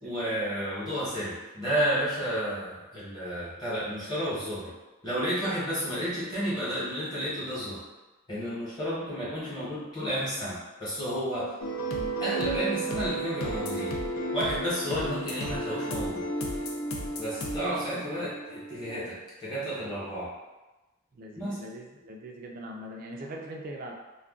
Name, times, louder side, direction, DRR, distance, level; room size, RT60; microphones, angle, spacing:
voice 1, 0.0-4.7 5.0-7.8 8.3-11.5 12.2-13.9 14.3-16.2 17.2-20.3 21.4-21.6, equal, 20° left, -9 dB, 1.0 m, -31 dB
sound 1, 11.6-18.9, right 1 dB, 90° left, 0.5 m, -33 dB
voice 2, 17.6-18.3 21.1-23.9, right 1 dB, 40° right, 1 dB, 0.4 m, -42 dB
2.3 x 2.2 x 3.5 m, 1.1 s
head